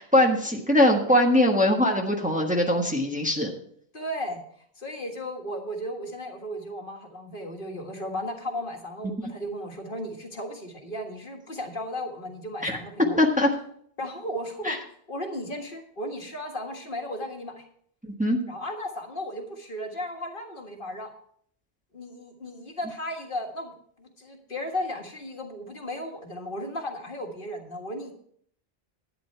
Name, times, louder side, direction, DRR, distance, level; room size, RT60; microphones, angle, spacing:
voice 1, 0.0-3.5 9.0-9.1 12.6-12.8 13.2-13.5 14.6-14.8 18.0-18.4, left 1 dB, 5° right, 1 dB, 1.3 m, -22 dB
voice 2, 3.9-4.4 4.8-13.2 14.0-14.8 15.1-17.6 18.5-21.1 21.9-28.1, equal, 55° left, 2 dB, 1.9 m, -35 dB
12.0 x 9.6 x 4.6 m, 0.64 s
omnidirectional pair, 1.1 m